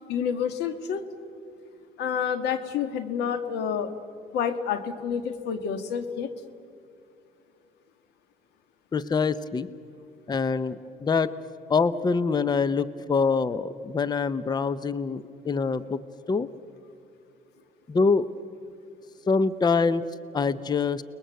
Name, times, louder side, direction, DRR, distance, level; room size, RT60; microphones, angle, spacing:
voice 1, 0.1-1.1 2.0-4.0 4.3-6.3, left 7 dB, 80° left, 10 dB, 1.8 m, -29 dB
voice 2, 8.9-9.7 10.3-11.3 11.7-16.5 17.9-18.3 19.3-20.0 20.3-21.0, left 4 dB, 25° left, 15 dB, 0.7 m, -25 dB
30.0 x 21.0 x 8.1 m, 2.6 s
cardioid pair, 110°, 17 cm